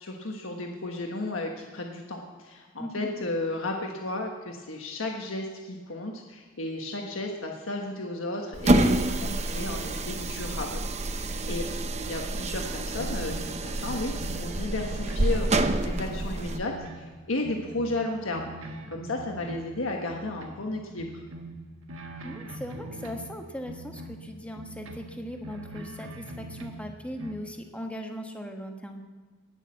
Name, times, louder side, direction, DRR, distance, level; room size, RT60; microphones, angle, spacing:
voice 1, 0.0-10.8 11.1-11.6 12.0-21.2, left 2 dB, 85° left, 1 dB, 1.4 m, -34 dB
sound 1, 8.5-16.6, right 2 dB, 35° right, 0.8 m, -28 dB
sound 2, 12.5-17.1 17.4-20.6 20.9-23.4 23.7-27.3, right 1 dB, 80° right, 1.4 m, -43 dB
voice 2, 22.2-29.0, equal, 5° left, 3 dB, 1.3 m, -39 dB
19.5 x 6.6 x 7.5 m, 1.4 s
head